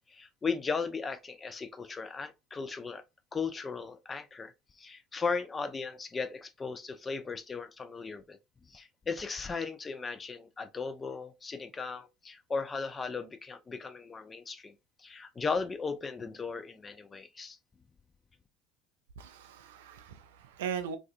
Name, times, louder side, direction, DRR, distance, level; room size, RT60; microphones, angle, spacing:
voice 1, 0.1-3.0 3.3-8.4 8.7-14.7 15.0-17.6, left 4 dB, 25° left, 0.4 m, -36 dB
voice 2, 19.2-21.0, right 7 dB, 75° right, 0.3 m, -39 dB
2.4 x 2.4 x 2.4 m
hypercardioid pair, 65°, 0 cm